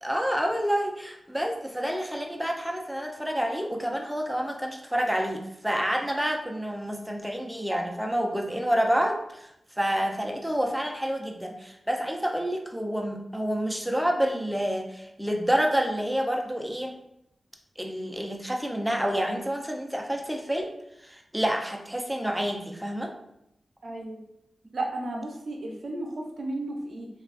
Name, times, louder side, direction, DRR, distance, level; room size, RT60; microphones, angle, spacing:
voice 1, 0.0-9.5 9.8-16.9 17.8-20.7 21.0-23.1, equal, 5° right, 2 dB, 0.4 m, -28 dB
voice 2, 23.8-24.2 24.7-27.1, right 2 dB, 70° right, 1 dB, 0.5 m, -33 dB
3.0 x 2.3 x 2.4 m, 0.81 s
cardioid pair, 65°, 0 cm